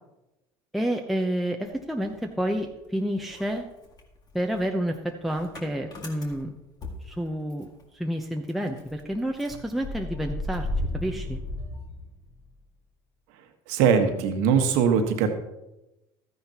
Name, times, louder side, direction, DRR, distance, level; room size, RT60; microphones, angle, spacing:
voice 1, 0.7-3.6 4.3-6.5 7.0-10.7 10.9-11.4, equal, ahead, 2 dB, 0.8 m, -29 dB
Motor vehicle (road) / Engine starting, 1.7-2.9 3.2-7.8 8.1-8.2 8.5-12.6, left 1 dB, 35° left, 1.9 m, -36 dB
voice 2, 13.7-15.3, right 6 dB, 75° right, 5 dB, 1.4 m, -21 dB
13.0 x 9.6 x 2.9 m, 0.96 s
supercardioid pair, 90°, 12 cm